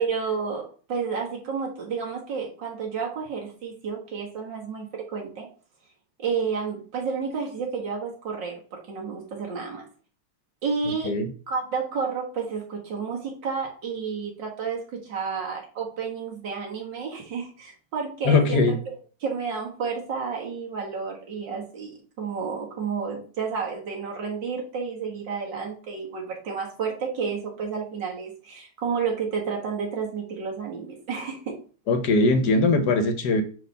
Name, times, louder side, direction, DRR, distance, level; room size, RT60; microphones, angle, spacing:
voice 1, 0.0-5.5 6.2-9.9 10.6-11.2 11.5-18.7 19.2-21.9 22.2-31.6, right 5 dB, 70° right, 0 dB, 2.3 m, -31 dB
voice 2, 18.2-18.8 31.9-33.4, left 3 dB, 65° left, 9 dB, 1.3 m, -20 dB
5.0 x 4.2 x 5.4 m, 0.39 s
omnidirectional pair, 2.0 m